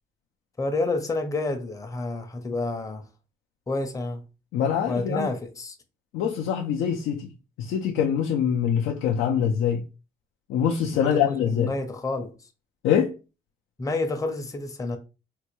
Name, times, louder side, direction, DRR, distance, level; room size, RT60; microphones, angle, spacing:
voice 1, 0.6-3.0 3.7-4.2 4.9-5.8 11.0-12.3 13.8-15.0, left 2 dB, 15° left, 0.6 m, -29 dB
voice 2, 4.5-5.3 6.1-7.3 7.6-9.8 10.5-11.7 12.8-13.1, left 8 dB, 85° left, 0.4 m, -24 dB
3.3 x 2.2 x 3.0 m
cardioid pair, 90°, 20 cm